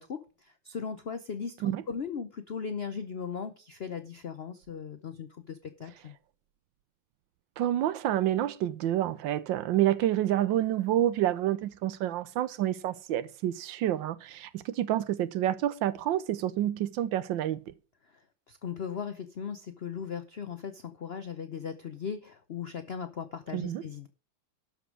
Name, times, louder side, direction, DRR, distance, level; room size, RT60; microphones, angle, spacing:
voice 1, 0.0-6.1 18.5-24.1, left 6 dB, 75° left, 0.5 m, -38 dB
voice 2, 7.6-17.7 23.5-23.8, right 12 dB, 75° right, 1.4 m, -28 dB
12.0 x 5.3 x 6.3 m
omnidirectional pair, 2.1 m